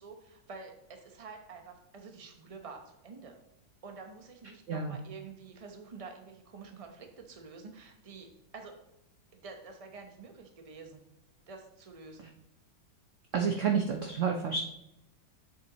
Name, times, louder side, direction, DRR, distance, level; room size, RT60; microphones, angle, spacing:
voice 1, 0.0-3.4 3.8-8.3 8.5-8.7 9.3-11.0 11.5-12.3, right 4 dB, 25° right, 3 dB, 0.9 m, -48 dB
voice 2, 4.7-5.0 13.3-14.6, right 6 dB, 60° right, 3 dB, 0.9 m, -29 dB
7.6 x 7.5 x 3.0 m, 0.83 s
omnidirectional pair, 2.0 m